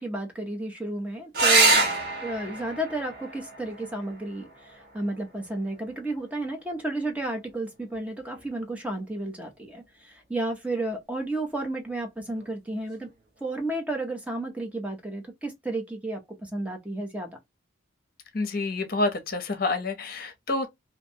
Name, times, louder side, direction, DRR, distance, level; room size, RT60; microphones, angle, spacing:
voice 1, 0.0-1.9 2.2-13.1 13.4-17.3, right 2 dB, 5° right, 0.6 m, -32 dB
sound 1, 1.3-6.4 8.3-8.9 12.3-12.5 12.8-12.9, right 3 dB, 50° right, 0.8 m, -27 dB
voice 2, 18.3-20.7, left 2 dB, 50° left, 0.7 m, -28 dB
2.6 x 2.1 x 2.6 m
head